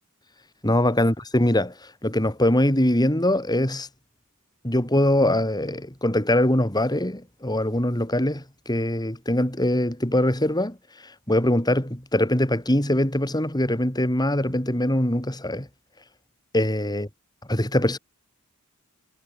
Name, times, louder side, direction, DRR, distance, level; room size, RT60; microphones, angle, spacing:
voice 1, 0.6-3.9 4.6-10.8 11.0-15.7 16.5-17.1 17.5-18.0, left 1 dB, 20° left, 4.5 m, -22 dB
head